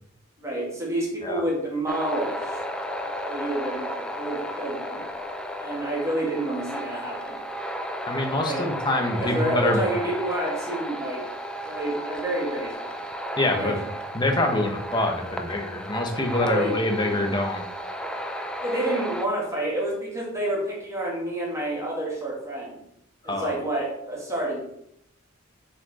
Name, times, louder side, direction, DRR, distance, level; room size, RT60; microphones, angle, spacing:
voice 1, 0.4-2.6 3.2-5.0 5.6-7.4 8.4-8.7 9.2-11.2 11.6-13.0 13.5-13.8 16.4-17.2 18.6-22.8 23.2-24.6, right 1 dB, 15° right, -3 dB, 2.1 m, -29 dB
sound 1, 1.9-19.2, equal, 5° left, 0.5 m, -34 dB
voice 2, 8.1-9.8 13.4-13.8 14.1-17.6 23.3-23.6, left 2 dB, 20° left, 4 dB, 1.0 m, -25 dB
7.2 x 4.7 x 4.2 m, 0.72 s
head